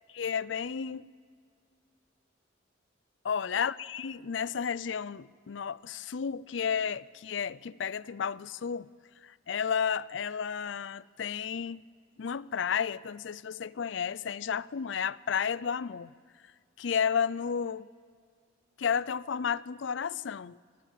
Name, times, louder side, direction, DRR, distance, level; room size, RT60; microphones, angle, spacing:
voice 1, 0.1-1.1 3.2-8.9 9.2-11.8 12.2-16.1 16.8-17.9 18.8-20.6, left 7 dB, 70° left, 0.5 m, -32 dB
23.5 x 18.5 x 7.5 m
head